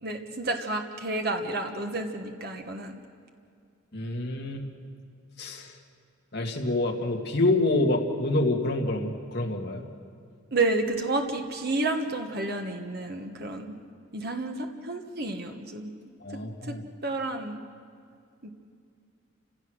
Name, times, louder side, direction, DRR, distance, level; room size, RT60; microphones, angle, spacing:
voice 1, 0.0-3.0 10.5-13.7 14.1-15.9 16.3-17.6 18.4-18.5, right 2 dB, 50° right, 3 dB, 1.4 m, -30 dB
voice 2, 3.9-4.6 5.4-5.7 6.3-9.8 16.2-16.8, left 2 dB, 50° left, 1 dB, 2.1 m, -27 dB
30.0 x 16.5 x 6.4 m, 2.3 s
head